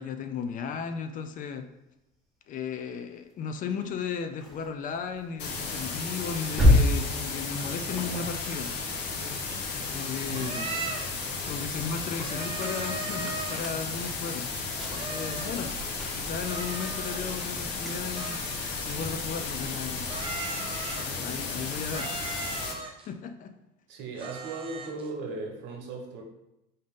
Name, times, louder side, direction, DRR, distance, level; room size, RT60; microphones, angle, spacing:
voice 1, 0.0-1.7 2.5-8.7 9.2-9.4 9.7-10.7 11.1-14.5 14.9-15.8 16.1-18.4 18.8-20.1 21.0-22.1 22.8-23.5, left 6 dB, 40° left, 8 dB, 0.4 m, -35 dB
sound 1, 3.7-10.2 10.7-20.5, left 1 dB, ahead, 0.9 m, -32 dB
sound 2, 5.4-22.7, left 4 dB, 55° left, 0.8 m, -34 dB
voice 2, 10.2-10.8 23.9-26.2, right 3 dB, 65° right, 1 dB, 1.0 m, -37 dB
sound 3, 10.3-11.2 12.2-13.8 14.9-15.7 16.5-17.5 18.1-19.3 20.1-21.3 21.9-23.1 24.2-25.1, right 3 dB, 25° right, 0.6 m, -38 dB
3.8 x 2.6 x 3.6 m, 0.90 s
supercardioid pair, 110°, 21 cm